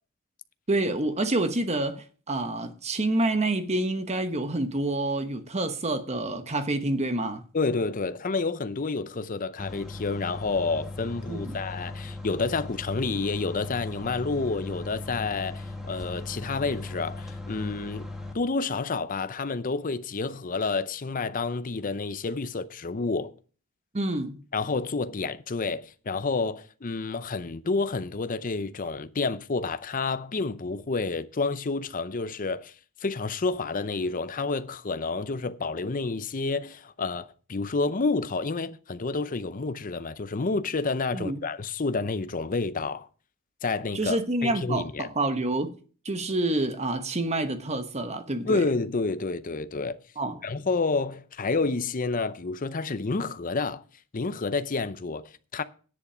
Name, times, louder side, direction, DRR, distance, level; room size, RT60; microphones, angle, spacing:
voice 1, 0.7-7.4 11.3-11.6 23.9-24.4 41.1-41.4 43.9-45.8 46.0-48.6 50.2-50.4, right 2 dB, 30° right, 1.0 m, -28 dB
voice 2, 7.5-18.1 18.3-23.3 24.5-32.7 33.0-43.1 43.6-45.1 48.5-50.0 50.4-53.8 54.1-55.6, left 3 dB, 40° left, 0.6 m, -29 dB
sound 1, 9.6-18.3, left 2 dB, ahead, 1.7 m, -38 dB
10.0 x 8.3 x 5.0 m
head